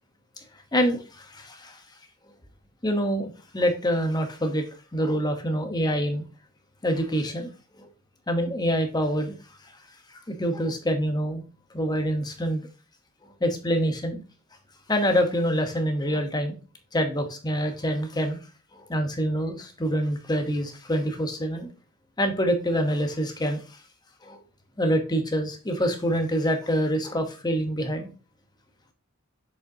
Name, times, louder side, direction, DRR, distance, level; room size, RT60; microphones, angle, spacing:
voice 1, 0.7-1.8 2.8-4.6 4.9-6.2 6.8-7.5 8.3-9.3 10.3-11.4 11.7-12.7 13.4-14.2 14.9-16.6 16.9-18.4 18.7-21.7 22.2-23.6 24.2-24.4 24.8-28.1, equal, 20° left, 5 dB, 0.9 m, -26 dB
6.6 x 5.3 x 2.7 m, 0.35 s
head